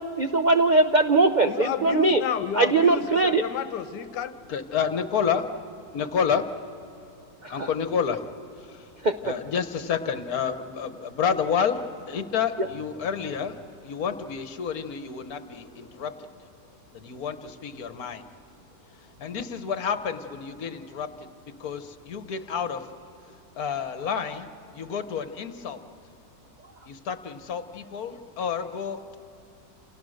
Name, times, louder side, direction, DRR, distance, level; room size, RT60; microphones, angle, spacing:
voice 1, 0.0-2.2 2.5-3.4 7.4-7.7 9.0-9.1, right 3 dB, 60° right, 7 dB, 0.4 m, -21 dB
voice 2, 1.4-4.3, left 8 dB, 75° left, 12 dB, 1.5 m, -31 dB
voice 3, 4.5-5.5 5.9-6.6 7.5-8.3 8.6-8.9 9.2-16.5 16.9-18.3 18.9-22.9 23.2-25.8 26.9-29.2, left 7 dB, 60° left, 10 dB, 1.5 m, -30 dB
29.0 x 28.0 x 6.5 m, 2.8 s
omnidirectional pair, 1.9 m